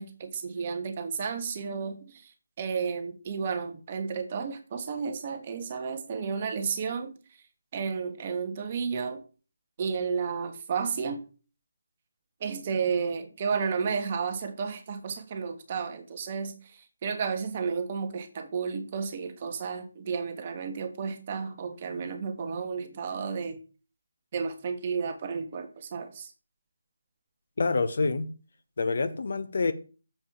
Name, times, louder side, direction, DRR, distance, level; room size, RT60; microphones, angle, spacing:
voice 1, 0.0-2.0 2.6-7.1 7.7-9.2 9.8-11.2 12.4-16.5 17.0-23.6 24.3-26.3, right 5 dB, 35° right, 1.4 m, -32 dB
voice 2, 27.6-28.3 28.8-29.7, left 3 dB, 55° left, 1.0 m, -27 dB
7.5 x 4.8 x 7.2 m
figure-of-eight pair, 150°, 0 cm